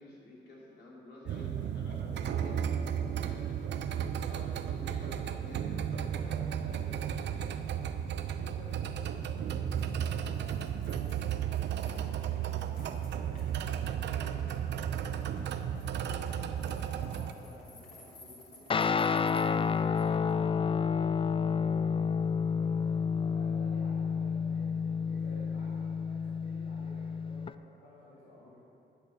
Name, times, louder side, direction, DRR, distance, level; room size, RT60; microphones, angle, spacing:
voice 1, 0.0-2.6 3.3-3.5 4.2-7.5, left 1 dB, 70° left, -4 dB, 3.2 m, -50 dB
voice 2, 1.3-3.2 6.8-7.1 8.3-15.7 16.1-19.9 20.2-22.0 22.5-22.8 23.1-28.6, left 2 dB, 85° left, -7 dB, 2.0 m, -53 dB
sound 1, 1.3-17.3, right 9 dB, 75° right, 0.6 m, -34 dB
sound 2, 9.7-20.3, left 2 dB, 50° left, 3.2 m, -56 dB
Guitar, 18.7-27.5, left 6 dB, 30° left, 0.4 m, -30 dB
11.5 x 7.8 x 6.7 m, 2.6 s
cardioid pair, 70°, 18 cm